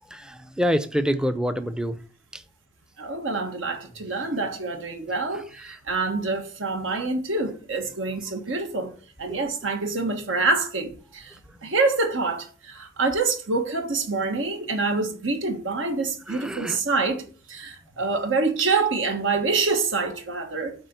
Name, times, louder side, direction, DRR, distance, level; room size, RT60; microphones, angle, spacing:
voice 1, 0.1-2.0 2.3-2.4 4.2-4.3 5.3-5.8 9.3-9.4 16.3-16.8, equal, 5° right, 0.5 m, -27 dB
voice 2, 3.0-8.9 9.2-11.3 11.6-20.7, right 3 dB, 75° right, 1.4 m, -26 dB
8.7 x 4.2 x 6.8 m
head